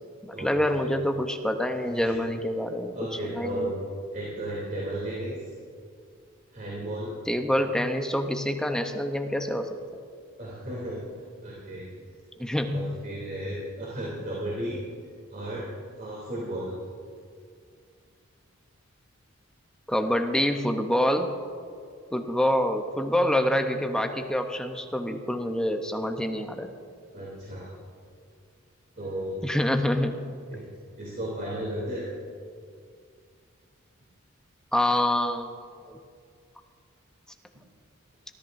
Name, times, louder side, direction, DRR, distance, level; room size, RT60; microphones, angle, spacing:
voice 1, 0.2-3.0 3.2-3.7 7.3-9.7 12.4-12.9 19.9-21.3 22.1-26.7 29.4-30.2 34.7-35.6 35.9-36.0, left 1 dB, 5° left, 5 dB, 0.7 m, -26 dB
voice 2, 2.9-3.8 4.1-5.5 6.5-7.1 10.4-11.0 11.4-11.9 12.6-14.8 15.3-15.7 16.0-16.7 27.1-27.7 29.0-29.4 30.5-30.6 31.0-32.1, right 1 dB, 40° right, -6 dB, 3.0 m, -34 dB
23.0 x 14.0 x 2.6 m, 2.3 s
head